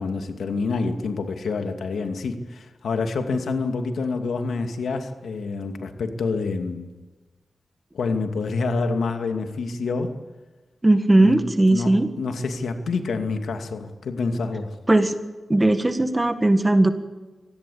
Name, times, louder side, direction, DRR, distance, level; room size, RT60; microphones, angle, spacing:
voice 1, 0.0-6.9 7.9-10.2 11.2-14.8, left 4 dB, 90° left, 6 dB, 2.4 m, -27 dB
voice 2, 10.8-12.1 14.9-15.1 15.5-16.9, right 2 dB, 15° right, 9 dB, 1.7 m, -18 dB
24.5 x 18.5 x 8.7 m, 1.2 s
wide cardioid pair, 120°, 0 cm